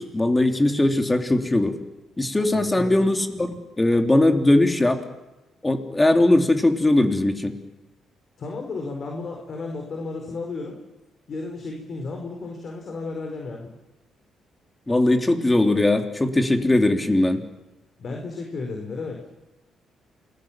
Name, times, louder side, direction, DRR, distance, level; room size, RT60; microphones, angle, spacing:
voice 1, 0.0-1.8 2.2-3.5 3.8-5.0 5.6-7.5 14.9-17.4, left 1 dB, 15° left, 5 dB, 3.1 m, -20 dB
voice 2, 2.5-3.0 8.4-10.8 11.3-13.7 18.0-19.2, left 3 dB, 50° left, 2 dB, 4.7 m, -33 dB
28.5 x 20.5 x 7.4 m, 1.0 s
cardioid pair, 90°, 0 cm